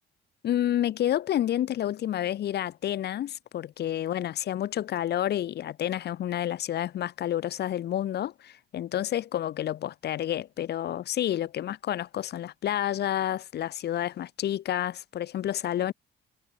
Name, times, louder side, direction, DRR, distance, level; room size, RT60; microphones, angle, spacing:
voice 1, 0.4-15.9, left 11 dB, 55° left, 0.5 m, -29 dB
cardioid pair, 90°, 20 cm